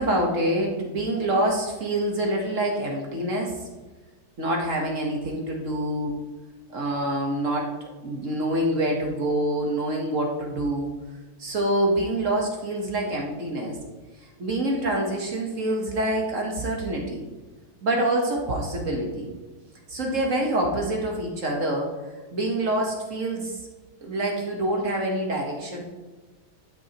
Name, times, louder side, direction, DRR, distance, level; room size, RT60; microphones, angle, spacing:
voice 1, 0.0-3.6 4.4-6.1 6.7-7.7 8.0-10.9 11.4-13.8 14.4-17.2 17.8-19.3 19.9-21.9 22.3-23.6 24.0-25.8, right 1 dB, 45° right, 0 dB, 1.2 m, -26 dB
12.5 x 6.2 x 2.9 m, 1.2 s
omnidirectional pair, 2.4 m